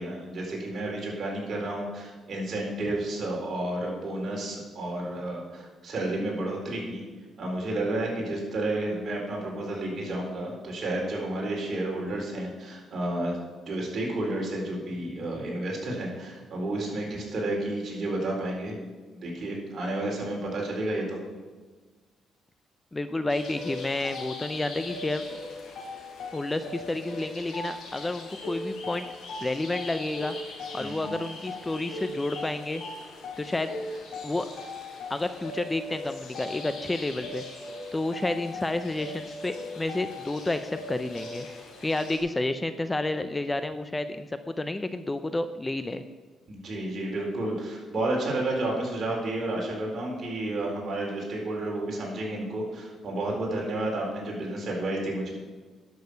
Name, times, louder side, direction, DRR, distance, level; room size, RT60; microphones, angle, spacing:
voice 1, 0.0-7.0 7.4-13.4 13.7-18.8 19.2-21.2 30.8-31.1 46.5-55.3, right 1 dB, 50° right, -1 dB, 4.1 m, -31 dB
voice 2, 22.9-25.3 26.3-29.1 29.4-30.3 30.7-32.8 33.4-33.7 34.2-34.5 35.1-37.4 37.9-41.5 41.8-46.0, left 2 dB, 15° left, 10 dB, 0.6 m, -30 dB
sound 1, 23.3-42.2, left 2 dB, 75° left, 3.7 m, -39 dB
11.5 x 6.5 x 6.9 m, 1.4 s
cardioid pair, 95°, 0 cm